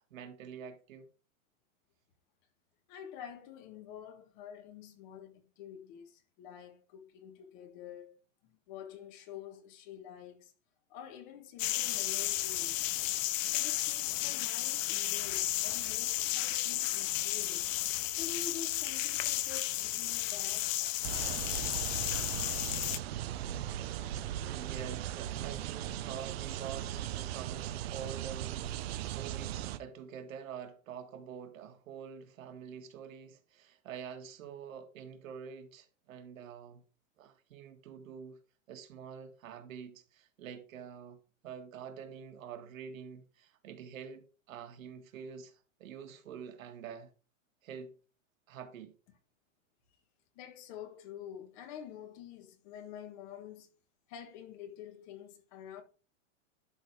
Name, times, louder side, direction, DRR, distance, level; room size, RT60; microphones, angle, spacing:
voice 1, 0.1-1.1 24.5-36.8 37.2-38.4 38.7-41.2 41.4-47.1 47.6-48.0 48.5-48.9, right 7 dB, 75° right, 2.0 m, -46 dB
voice 2, 2.9-8.2 8.4-10.5 10.9-12.9 13.5-17.7 18.1-20.8 50.3-53.7 54.1-55.8, left 8 dB, 35° left, 1.6 m, -48 dB
sound 1, 11.6-23.0, left 15 dB, 70° left, 0.6 m, -33 dB
sound 2, 21.0-29.8, right 12 dB, 50° right, 0.6 m, -38 dB
11.5 x 4.1 x 4.7 m
supercardioid pair, 165°, 40 cm